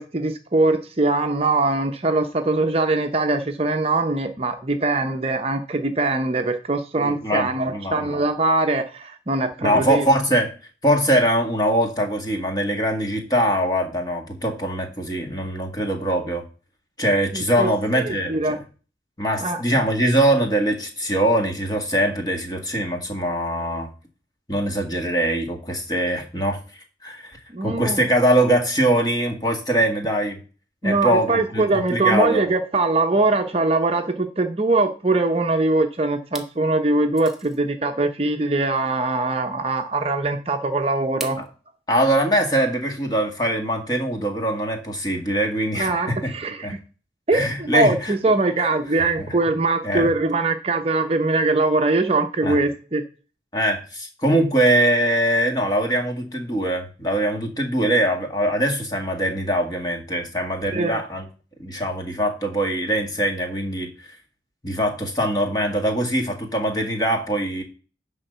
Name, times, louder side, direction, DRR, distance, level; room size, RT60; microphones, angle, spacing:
voice 1, 0.0-10.1 17.3-18.6 19.4-19.6 27.5-28.1 30.8-41.4 45.8-46.8 47.3-53.0 60.7-61.0, right 2 dB, 30° right, 5 dB, 0.7 m, -22 dB
voice 2, 7.0-8.2 9.6-10.5 10.8-16.4 17.0-18.6 19.2-23.9 24.5-26.6 27.0-30.4 30.8-32.4 41.4-41.5 41.9-46.3 46.6-46.7 47.3-48.1 48.6-48.7 49.2-49.3 49.8-50.1 52.4-52.6 53.5-61.2 61.6-64.2 64.6-67.6, right 1 dB, 20° left, 3 dB, 1.7 m, -22 dB
sound 1, 35.4-35.8 36.2-36.6 37.1-37.6 39.1-39.2 41.2-41.5, right 2 dB, ahead, 1.0 m, -37 dB
10.5 x 3.8 x 6.7 m, 0.36 s
head